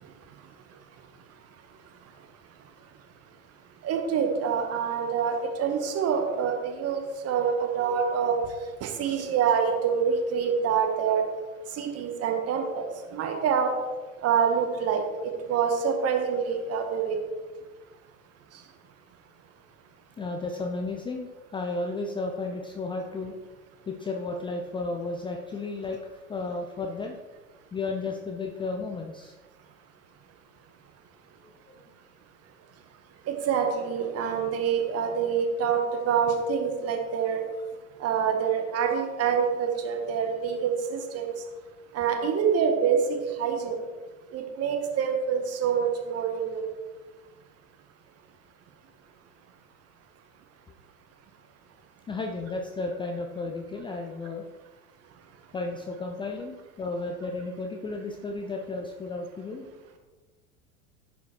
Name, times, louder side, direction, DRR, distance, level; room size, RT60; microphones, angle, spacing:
voice 1, 3.8-8.4 8.8-11.2 11.8-13.7 14.2-15.0 15.5-17.2 33.3-35.8 36.0-37.4 38.0-41.3 41.9-43.0 43.4-43.8 44.3-46.7, right 7 dB, 35° right, 4 dB, 1.7 m, -26 dB
voice 2, 20.2-23.3 23.9-26.0 26.3-27.1 27.7-29.3 31.4-31.8 52.1-54.5 55.5-59.7, left 3 dB, 10° left, 2 dB, 0.5 m, -33 dB
10.5 x 5.1 x 4.6 m, 1.3 s
figure-of-eight pair, 80°, 43 cm